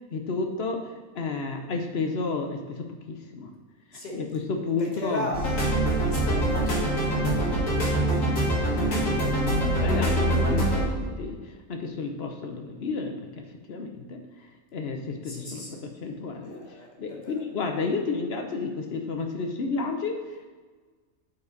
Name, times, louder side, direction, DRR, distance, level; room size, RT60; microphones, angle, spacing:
voice 1, 0.1-3.5 3.9-5.3 8.8-20.5, left 4 dB, 55° left, 4 dB, 0.9 m, -32 dB
voice 2, 4.8-5.4 6.0-7.3 15.2-15.8 16.4-17.4, equal, 35° left, -3 dB, 1.7 m, -37 dB
sound 1, 5.3-10.8, right 1 dB, 80° left, 2.2 m, -24 dB
8.5 x 4.6 x 4.0 m, 1.4 s
omnidirectional pair, 1.4 m